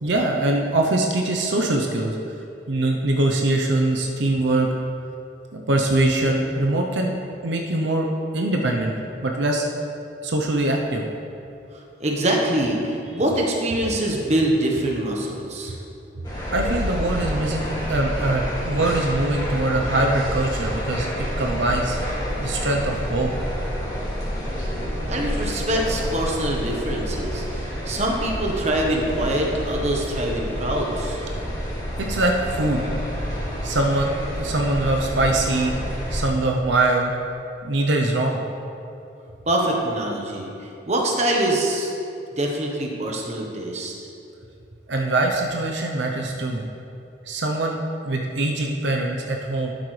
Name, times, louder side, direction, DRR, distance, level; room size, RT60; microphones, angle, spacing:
voice 1, 0.0-2.2 2.7-4.7 5.5-7.1 7.4-8.1 8.3-9.0 9.2-9.7 10.2-11.0 16.5-21.1 21.4-22.0 22.4-23.3 32.0-32.9 33.6-34.1 34.4-35.7 36.1-37.1 37.6-38.4 44.9-46.6 47.3-47.8 48.0-49.7, right 2 dB, 75° right, 1 dB, 0.7 m, -22 dB
voice 2, 12.0-15.8 25.1-31.2 39.5-41.9 42.4-43.9, right 1 dB, 35° right, 0 dB, 1.1 m, -24 dB
sound 1, 16.2-36.2, equal, 20° left, 2.3 m, -29 dB
12.0 x 8.0 x 3.3 m, 2.7 s
head